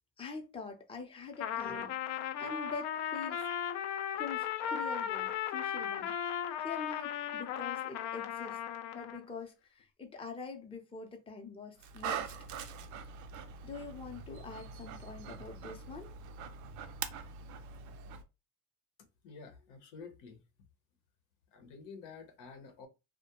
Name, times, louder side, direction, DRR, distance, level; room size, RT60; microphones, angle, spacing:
voice 1, 0.2-3.4 4.1-6.1 6.6-8.6 8.9-12.3 13.6-16.1, left 4 dB, 20° left, 0.6 m, -45 dB
Trumpet, 1.3-9.2, left 9 dB, 60° left, 0.4 m, -36 dB
Dog, 11.8-18.2, right 7 dB, 70° right, 0.5 m, -43 dB
voice 2, 19.2-20.4 21.5-22.9, left 5 dB, 80° left, 0.8 m, -50 dB
2.3 x 2.1 x 2.9 m
supercardioid pair, 90°, 31 cm